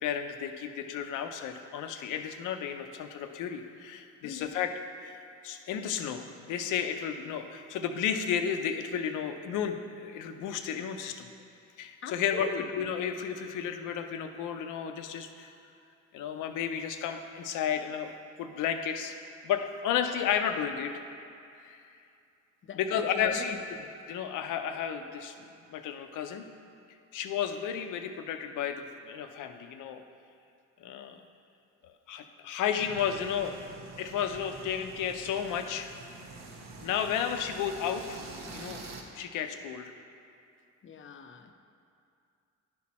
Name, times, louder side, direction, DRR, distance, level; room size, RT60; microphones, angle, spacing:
voice 1, 0.0-4.7 5.0-5.2 5.4-11.3 11.8-15.5 16.1-18.1 18.4-19.1 19.4-21.0 21.6-21.8 22.7-23.8 24.1-26.5 27.1-30.0 30.8-31.2 32.1-33.6 34.0-35.9 36.8-38.2 38.5-38.8 39.1-39.9, left 8 dB, 90° left, 7 dB, 0.6 m, -33 dB
voice 2, 12.0-12.6 22.7-23.4 40.8-41.5, left 5 dB, 40° left, 7 dB, 0.6 m, -40 dB
sound 1, 32.8-39.0, right 3 dB, 65° right, 1.0 m, -46 dB
11.0 x 4.3 x 4.2 m, 2.5 s
cardioid pair, 90°, 30 cm